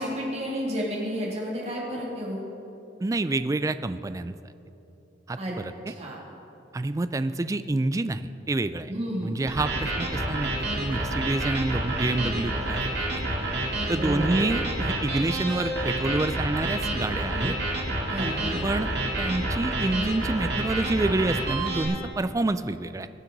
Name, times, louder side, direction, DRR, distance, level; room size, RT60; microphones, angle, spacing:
voice 1, 0.0-2.4 5.4-5.6 5.9-6.2 8.9-9.3 14.0-14.5 17.3-17.5 18.1-18.6, equal, 35° right, -3 dB, 2.4 m, -31 dB
voice 2, 3.0-4.3 5.3-5.9 6.7-8.9 9.2-12.8 13.1-13.2 13.9-17.5 18.6-18.9 19.2-23.1, right 2 dB, 20° right, 12 dB, 0.3 m, -28 dB
sound 1, 9.5-21.8, right 1 dB, 60° right, 2.2 m, -29 dB
21.5 x 7.5 x 3.9 m, 3.0 s
head